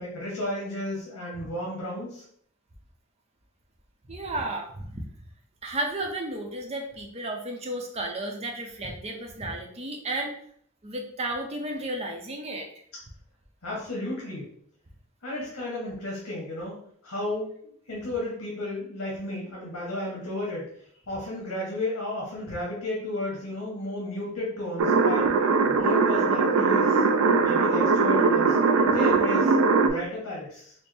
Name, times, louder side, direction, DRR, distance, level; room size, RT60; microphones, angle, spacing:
voice 1, 0.0-2.2 13.6-14.5 15.2-20.7 21.1-25.3 25.6-27.0 27.3-28.6 28.9-29.5 29.8-30.7, left 1 dB, 85° left, -4 dB, 1.1 m, -33 dB
voice 2, 4.1-5.0 5.6-10.3 10.8-12.7, right 1 dB, 30° right, 2 dB, 0.6 m, -33 dB
sound 1, 24.8-29.9, right 4 dB, 85° right, 0.4 m, -21 dB
4.3 x 2.0 x 3.3 m, 0.63 s
head